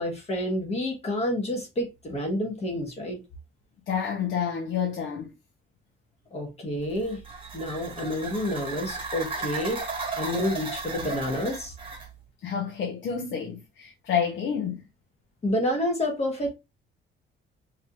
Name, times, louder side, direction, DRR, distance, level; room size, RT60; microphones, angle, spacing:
voice 1, 0.0-3.2 6.3-7.2 7.5-9.8 10.2-11.7 15.4-16.5, left 1 dB, 30° left, 1.3 m, -29 dB
voice 2, 3.9-5.3 12.4-14.8, left 7 dB, 60° left, 0.8 m, -29 dB
sound 1, 6.8-12.1, right 4 dB, 25° right, 1.1 m, -35 dB
4.7 x 2.9 x 2.4 m
cardioid pair, 140°, 21 cm